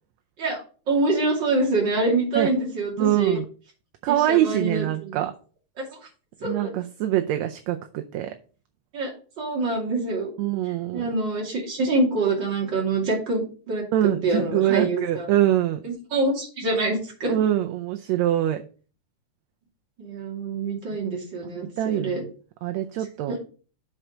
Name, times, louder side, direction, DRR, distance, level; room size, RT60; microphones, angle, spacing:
voice 1, 0.9-3.4 4.1-5.2 6.4-6.8 8.9-9.1 9.4-10.3 10.9-13.8 14.2-15.3 15.8-17.3 20.0-22.2 23.3-23.4, right 2 dB, 40° right, -1 dB, 3.0 m, -25 dB
voice 2, 3.0-3.5 4.0-5.3 6.4-8.3 10.4-11.1 13.9-15.8 17.3-18.6 21.6-22.3 22.6-23.4, right 12 dB, 75° right, 6 dB, 1.8 m, -24 dB
7.7 x 4.6 x 5.1 m, 0.38 s
omnidirectional pair, 3.4 m